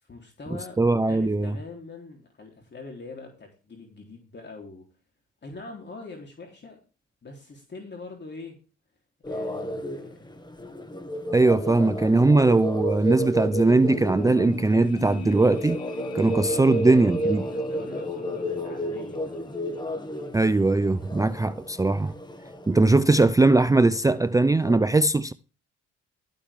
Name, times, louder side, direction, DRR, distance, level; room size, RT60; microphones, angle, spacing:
voice 1, 0.0-4.8 5.4-6.8 7.2-8.6 9.3-10.3 16.4-16.8 17.2-19.5, left 3 dB, 35° left, 3.8 m, -43 dB
voice 2, 0.8-1.5 11.3-15.8 16.1-17.4 20.3-22.1 22.7-25.3, right 2 dB, 10° right, 0.5 m, -20 dB
sound 1, 9.2-24.8, equal, 15° left, 2.1 m, -32 dB
sound 2, 13.4-18.7 19.0-19.1, left 10 dB, 60° left, 1.6 m, -44 dB
13.5 x 9.0 x 3.7 m
cardioid pair, 90°, 30 cm